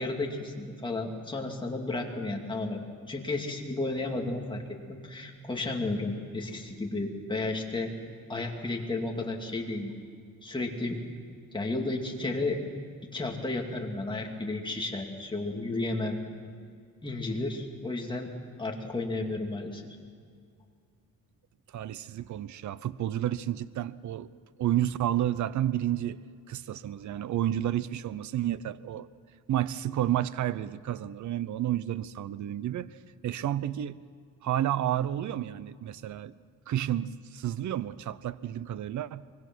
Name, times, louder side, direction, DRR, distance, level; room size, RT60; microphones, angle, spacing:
voice 1, 0.0-2.8 3.1-4.6 4.9-7.9 8.3-9.9 10.4-11.0 11.5-12.6 13.1-16.2 17.0-18.3 18.6-20.0, left 2 dB, 15° left, 1 dB, 2.4 m, -32 dB
voice 2, 21.7-24.3 24.6-26.2 26.5-29.1 29.5-34.0 34.4-36.3 36.7-39.3, right 12 dB, 60° right, 17 dB, 0.6 m, -31 dB
25.0 x 21.0 x 6.2 m, 2.2 s
wide cardioid pair, 160°, 34 cm